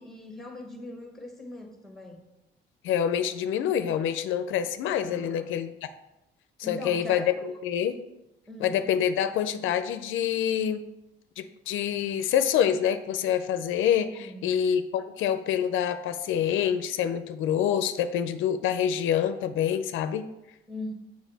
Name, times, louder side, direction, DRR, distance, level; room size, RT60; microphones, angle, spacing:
voice 1, 0.0-2.2 5.0-5.6 6.6-7.6 8.5-8.8 14.2-14.6 20.7-20.9, left 1 dB, ahead, 4 dB, 1.2 m, -41 dB
voice 2, 2.8-5.7 6.6-8.0 8.6-10.8 11.4-20.2, left 9 dB, 80° left, 11 dB, 0.4 m, -26 dB
6.3 x 4.8 x 3.9 m, 0.94 s
cardioid pair, 90°, 20 cm